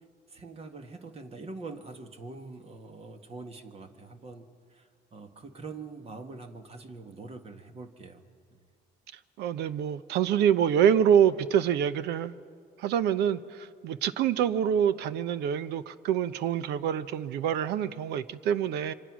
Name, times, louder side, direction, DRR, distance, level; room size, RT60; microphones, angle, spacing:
voice 1, 0.3-8.2 8.5-8.6, right 3 dB, 35° right, 6 dB, 1.8 m, -44 dB
voice 2, 9.4-12.3 12.8-18.9, right 9 dB, 80° right, 15 dB, 0.8 m, -26 dB
26.0 x 25.0 x 6.2 m, 2.2 s
cardioid pair, 110°, 17 cm